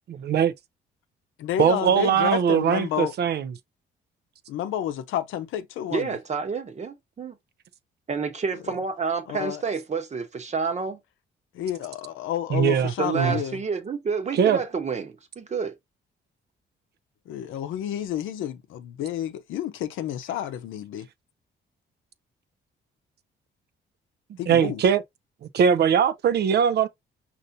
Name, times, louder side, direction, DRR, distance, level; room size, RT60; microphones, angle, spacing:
voice 1, 0.2-0.5 1.6-3.5 12.5-13.3 14.3-14.6 24.5-25.0 25.5-26.9, right 8 dB, 55° right, 0.4 m, -21 dB
voice 2, 1.4-3.1 4.5-6.2 8.7-8.8 9.3-9.6 11.5-13.6 17.3-21.1 24.4-24.8, left 11 dB, 85° left, 0.7 m, -30 dB
voice 3, 5.9-7.3 8.1-11.0 13.0-15.8, right 5 dB, 35° right, 0.9 m, -29 dB
5.3 x 2.6 x 2.6 m
cardioid pair, 90°, 20 cm